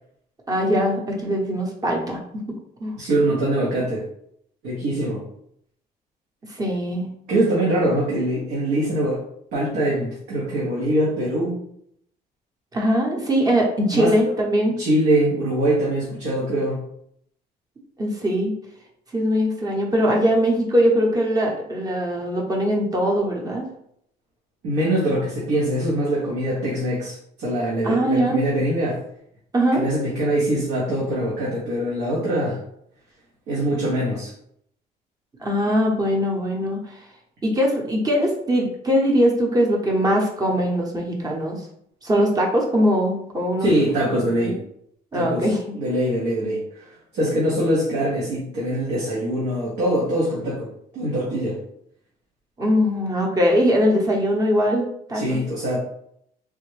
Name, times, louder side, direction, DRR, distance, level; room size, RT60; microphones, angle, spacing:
voice 1, 0.5-2.2 2.8-2.9 6.6-7.1 12.7-14.7 18.0-18.5 19.1-23.6 27.8-28.4 29.5-29.8 35.4-37.0 37.4-41.6 42.0-43.7 44.2-44.6 45.1-45.6 52.6-55.4, equal, 20° right, 0 dB, 0.8 m, -21 dB
voice 2, 3.0-4.0 4.6-5.2 7.3-9.2 9.5-11.6 13.9-14.3 14.8-16.8 24.6-29.0 29.7-32.6 33.5-34.3 43.6-44.6 45.1-46.9 47.1-51.6 55.1-55.8, right 1 dB, 85° right, -6 dB, 1.0 m, -23 dB
3.3 x 2.1 x 3.2 m, 0.71 s
cardioid pair, 110°, 17 cm